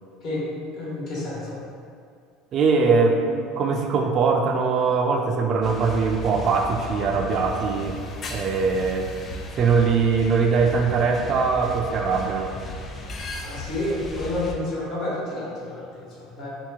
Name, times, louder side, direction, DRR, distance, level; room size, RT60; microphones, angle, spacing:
voice 1, 0.7-1.6 13.4-16.5, left 1 dB, 50° left, -6 dB, 1.1 m, -30 dB
voice 2, 2.5-8.0 8.3-9.1 9.6-12.5, right 5 dB, 45° right, 2 dB, 0.3 m, -21 dB
sound 1, 5.6-14.5, left 1 dB, 35° left, 0.3 m, -36 dB
2.8 x 2.6 x 3.6 m, 2.3 s
supercardioid pair, 110°, 0 cm